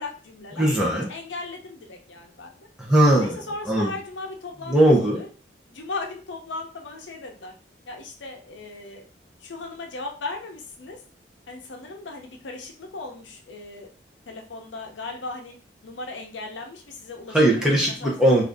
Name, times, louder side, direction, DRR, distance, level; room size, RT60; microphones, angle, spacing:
voice 1, 0.0-0.7 1.1-2.7 3.2-5.3 5.7-7.5 7.9-9.1 9.4-11.0 11.5-13.9 14.3-15.5 15.8-18.3, left 3 dB, 85° left, 2 dB, 0.7 m, -37 dB
voice 2, 0.6-1.1 2.8-3.4 3.7-3.9 4.7-5.2 17.3-18.4, right 1 dB, 5° right, -3 dB, 0.7 m, -19 dB
2.6 x 2.6 x 3.4 m, 0.39 s
head